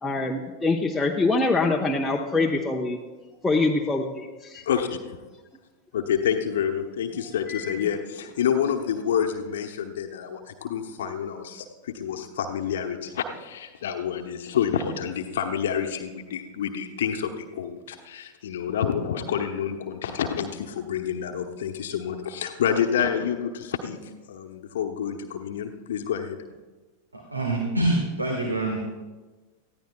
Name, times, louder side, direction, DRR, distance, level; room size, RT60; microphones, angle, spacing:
voice 1, 0.0-3.0 3.4-4.7 7.2-7.9, left 3 dB, 10° left, -1 dB, 0.9 m, -25 dB
voice 2, 4.5-5.0 5.9-24.0 24.3-26.4, left 8 dB, 60° left, 5 dB, 1.0 m, -28 dB
voice 3, 27.1-28.8, right 2 dB, 80° right, 2 dB, 1.5 m, -25 dB
19.5 x 14.5 x 2.3 m, 1.3 s
figure-of-eight pair, 90°, 0 cm